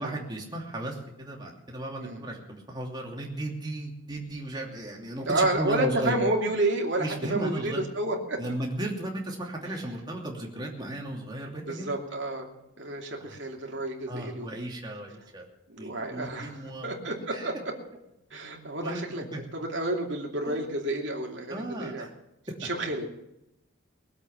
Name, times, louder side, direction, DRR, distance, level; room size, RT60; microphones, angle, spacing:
voice 1, 0.0-6.1 7.0-7.8 8.4-11.9 13.2-13.4 14.1-15.4 15.8-16.9 17.3-17.5 18.8-19.0 19.3-19.4 20.4-20.6 21.5-22.1 22.5-22.6, right 1 dB, 20° right, -1 dB, 2.8 m, -35 dB
voice 2, 5.3-8.4 11.7-14.5 15.7-17.5 18.3-19.2 19.5-22.1 22.6-23.1, right 2 dB, 55° right, 0 dB, 2.8 m, -30 dB
21.0 x 8.1 x 7.2 m, 0.89 s
head